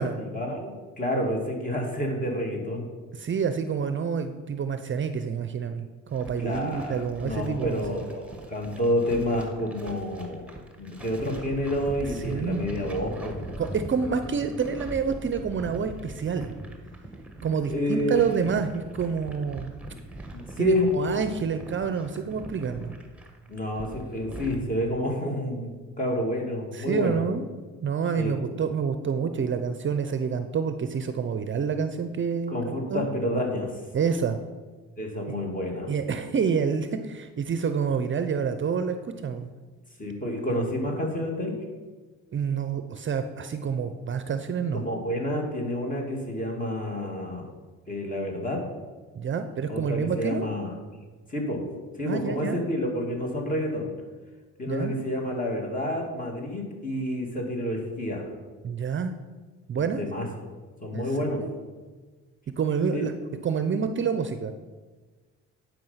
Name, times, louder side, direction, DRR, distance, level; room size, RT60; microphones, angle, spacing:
voice 1, 0.0-2.9 6.4-10.5 10.8-13.3 17.7-18.2 20.5-20.9 23.5-27.2 28.2-28.3 32.5-33.7 35.0-35.9 40.0-41.6 44.7-47.5 47.9-48.6 49.7-50.7 51.3-51.6 52.0-53.9 54.6-58.2 59.8-60.3 60.8-61.4 62.9-63.1, left 1 dB, 25° left, 0 dB, 2.5 m, -29 dB
voice 2, 3.1-7.8 12.2-12.6 13.6-16.5 17.4-19.7 20.6-22.9 26.7-27.5 27.8-33.0 33.9-34.4 35.9-39.5 42.3-44.8 49.1-50.5 52.1-52.6 54.7-54.9 58.6-59.2 59.7-60.0 60.9-61.1 61.4-61.5 62.6-63.1 63.4-64.5, right 6 dB, 40° right, 9 dB, 0.6 m, -28 dB
sound 1, 6.1-24.6, right 2 dB, 5° right, 1.3 m, -41 dB
10.5 x 5.1 x 5.7 m, 1.3 s
cardioid pair, 90°, 30 cm